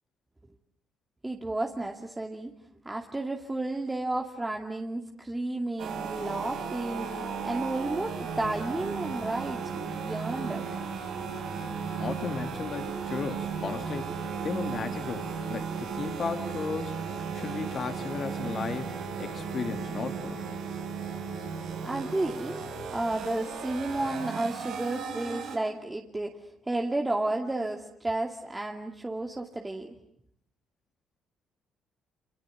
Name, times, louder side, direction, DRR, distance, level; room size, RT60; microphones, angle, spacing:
voice 1, 1.2-2.5 2.8-10.7 21.8-22.6 22.9-29.9, right 2 dB, 20° right, 2 dB, 2.5 m, -32 dB
sound 1, 5.8-25.6, right 6 dB, 70° right, 6.6 m, -35 dB
voice 2, 11.9-20.4, left 5 dB, 50° left, 7 dB, 3.2 m, -35 dB
27.5 x 26.5 x 8.0 m, 0.74 s
hypercardioid pair, 55°, 0 cm